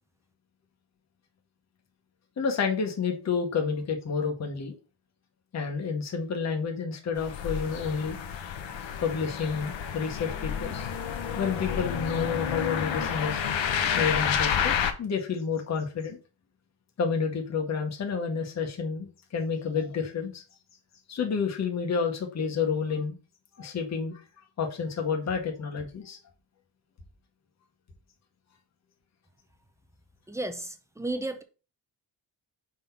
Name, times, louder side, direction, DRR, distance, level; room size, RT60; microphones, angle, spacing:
voice 1, 2.4-4.7 5.5-8.2 9.0-10.8 11.4-13.4 14.0-16.2 17.0-20.4 21.1-23.2 23.6-24.2 24.6-26.2, left 5 dB, 35° left, 1.1 m, -30 dB
sound 1, 7.2-14.9, left 8 dB, 75° left, 1.0 m, -30 dB
voice 2, 30.3-31.4, right 2 dB, 5° right, 0.5 m, -33 dB
5.2 x 3.8 x 5.7 m
wide cardioid pair, 175°, 45 cm